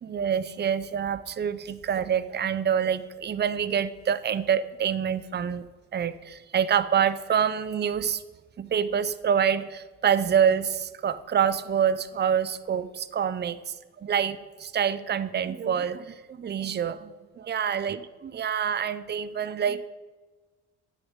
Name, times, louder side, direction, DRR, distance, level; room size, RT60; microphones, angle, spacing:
voice 1, 0.0-5.6 5.9-8.2 8.6-13.6 14.0-19.8, right 8 dB, 35° right, 14 dB, 0.6 m, -26 dB
9.4 x 6.4 x 8.3 m, 1.3 s
cardioid pair, 90°, 30 cm